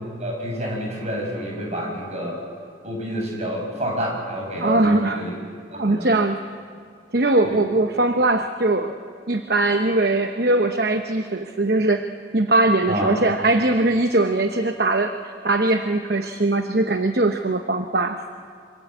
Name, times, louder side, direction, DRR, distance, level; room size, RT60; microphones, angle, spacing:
voice 1, 0.2-2.4 2.8-5.3 5.7-6.1 7.4-7.6 12.9-13.2, equal, 35° right, -1 dB, 7.2 m, -28 dB
voice 2, 4.6-5.2 5.7-6.4 7.1-8.9 9.3-12.1 12.3-18.2, right 2 dB, 55° right, 6 dB, 1.0 m, -21 dB
26.0 x 25.0 x 8.1 m, 2.2 s
head